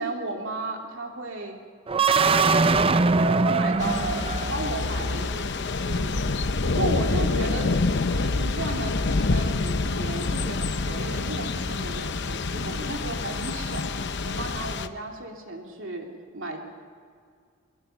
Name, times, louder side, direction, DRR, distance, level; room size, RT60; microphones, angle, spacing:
voice 1, 0.0-1.6 2.2-2.8 3.4-6.2 6.6-13.9 14.2-16.1 16.3-16.6, right 2 dB, 60° right, 1 dB, 3.0 m, -34 dB
sound 1, 1.9-4.8, right 4 dB, 25° right, 0.5 m, -22 dB
Thunder / Rain, 3.8-14.9, left 3 dB, 55° left, 0.8 m, -27 dB
22.5 x 22.5 x 5.9 m, 2.1 s
head